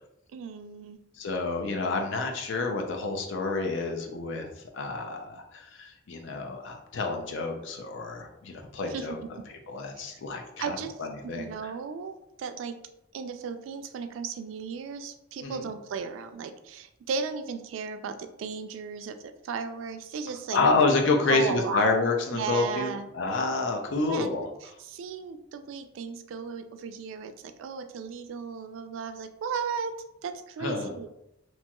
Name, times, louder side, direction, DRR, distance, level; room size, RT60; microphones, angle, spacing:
voice 1, 0.3-1.0 8.9-9.3 10.0-10.2 10.6-10.9 11.2-12.8 13.1-20.6 21.3-22.0 22.3-23.1 24.0-24.3 24.6-29.9 30.2-31.1, right 5 dB, 80° right, 9 dB, 0.3 m, -35 dB
voice 2, 1.2-4.5 4.7-9.2 9.5-11.5 15.4-15.6 20.5-24.5 30.6-30.9, left 3 dB, 70° left, 3 dB, 0.5 m, -28 dB
2.9 x 2.9 x 2.2 m, 0.85 s
head